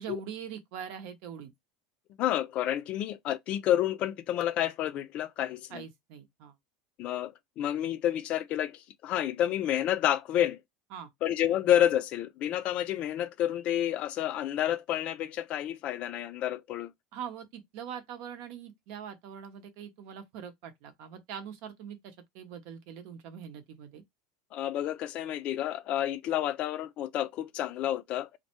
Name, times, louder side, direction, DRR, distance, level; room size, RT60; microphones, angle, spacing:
voice 1, 0.0-1.5 5.7-6.5 10.9-11.1 17.1-24.0, right 8 dB, 60° right, 0.7 m, -43 dB
voice 2, 2.2-5.9 7.0-10.6 11.2-16.9 24.5-28.3, left 11 dB, 50° left, 0.3 m, -29 dB
2.2 x 2.0 x 2.9 m
hypercardioid pair, 100°, 3 cm